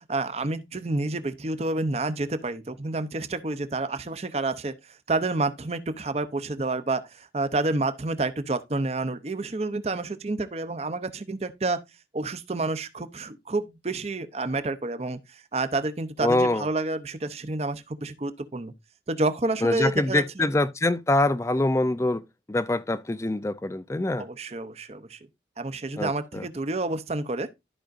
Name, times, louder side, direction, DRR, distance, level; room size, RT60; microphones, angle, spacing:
voice 1, 0.1-11.8 12.1-18.7 19.1-20.2 24.2-25.2 25.6-27.5, right 2 dB, 35° right, 0.6 m, -29 dB
voice 2, 16.2-16.7 19.6-24.3 26.0-26.5, left 2 dB, 15° left, 0.4 m, -25 dB
13.0 x 5.0 x 2.5 m
head